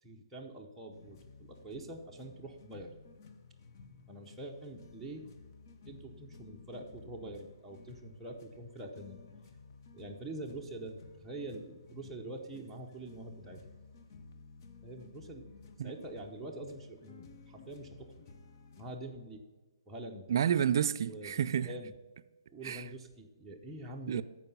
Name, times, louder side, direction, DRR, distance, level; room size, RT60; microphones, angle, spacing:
voice 1, 0.0-2.9 4.1-5.2 5.9-9.2 9.9-13.6 14.8-15.5 15.8-18.2 18.8-19.4 19.9-20.3 21.0-21.3 21.6-21.9 22.5-24.2, right 2 dB, 5° right, 0.7 m, -45 dB
sound 1, 0.9-19.0, left 4 dB, 40° left, 0.8 m, -55 dB
voice 2, 20.3-21.7 22.6-22.8 24.1-24.2, right 9 dB, 55° right, 0.4 m, -29 dB
13.5 x 4.7 x 5.5 m
hypercardioid pair, 150°, 3 cm